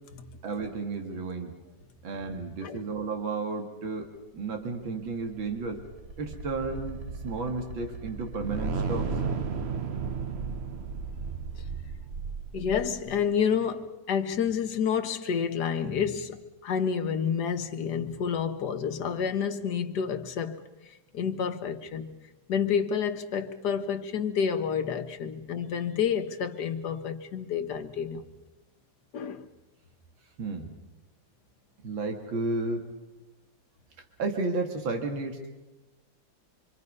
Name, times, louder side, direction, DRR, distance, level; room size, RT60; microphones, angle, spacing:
voice 1, 0.4-1.5 2.0-5.8 6.2-9.1 30.4-30.7 31.8-32.9 34.2-35.5, right 3 dB, 80° right, 2.6 m, -32 dB
sound 1, 4.9-13.3, right 5 dB, 50° right, 0.8 m, -34 dB
voice 2, 12.5-20.6 21.1-22.1 22.5-28.2 29.1-29.4, left 7 dB, 60° left, 1.7 m, -29 dB
26.5 x 24.0 x 5.4 m
omnidirectional pair, 2.1 m